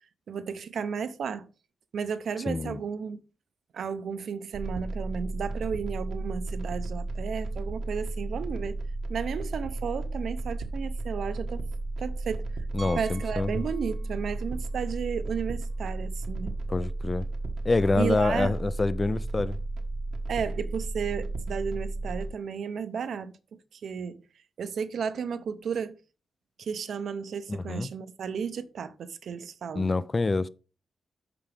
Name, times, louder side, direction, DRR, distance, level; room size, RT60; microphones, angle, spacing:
voice 1, 0.3-1.5 1.9-3.2 3.7-8.8 9.1-11.7 12.0-12.6 12.9-16.6 18.0-18.6 20.3-23.4 23.7-24.2 24.6-25.9 26.6-29.9, right 6 dB, 70° right, 0.7 m, -33 dB
voice 2, 2.5-2.8 12.7-13.6 16.7-17.3 17.6-19.6 27.5-27.9 29.8-30.5, left 3 dB, 25° left, 0.4 m, -26 dB
sound 1, 4.5-22.3, right 2 dB, 90° right, 1.4 m, -33 dB
Piano, 12.8-14.4 14.7-14.8 15.4-15.5 15.7-15.8 17.9-18.0, right 5 dB, 35° right, 0.7 m, -46 dB
12.5 x 5.0 x 3.4 m
wide cardioid pair, 160°, 0 cm